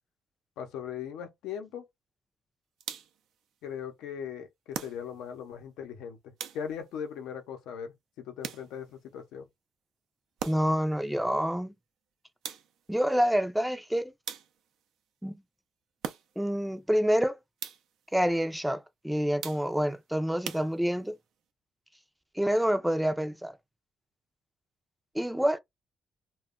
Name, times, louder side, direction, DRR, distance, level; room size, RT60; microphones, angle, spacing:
voice 1, 0.6-1.8 3.6-9.5, left 8 dB, 90° left, 0.7 m, -39 dB
sound 1, 2.8-3.3 4.7-5.4 6.4-7.0 8.4-9.0 10.4-10.9 12.4-13.0 14.2-14.8 16.0-16.6 17.6-18.1 19.4-19.9 20.4-21.2, right 8 dB, 80° right, 0.4 m, -41 dB
voice 2, 10.5-11.7 12.9-14.1 15.2-15.3 16.4-17.4 18.1-21.2 22.4-23.5 25.1-25.6, equal, 5° right, 0.4 m, -27 dB
2.2 x 2.1 x 3.6 m
cardioid pair, 90°, 0 cm